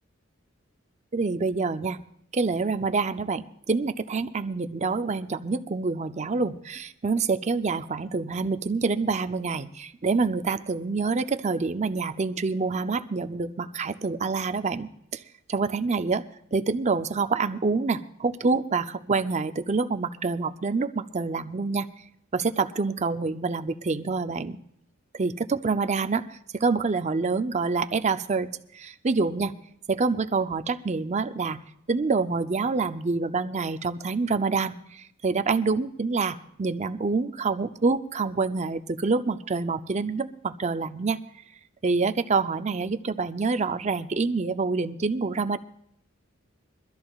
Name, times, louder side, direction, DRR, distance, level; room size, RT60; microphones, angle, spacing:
voice 1, 1.1-2.0 2.3-15.2 15.5-16.3 16.5-21.9 22.3-24.6 25.1-29.5 29.9-31.6 31.9-41.2 41.8-45.6, right 4 dB, 35° right, 9 dB, 0.5 m, -27 dB
23.5 x 13.0 x 2.4 m, 0.72 s
head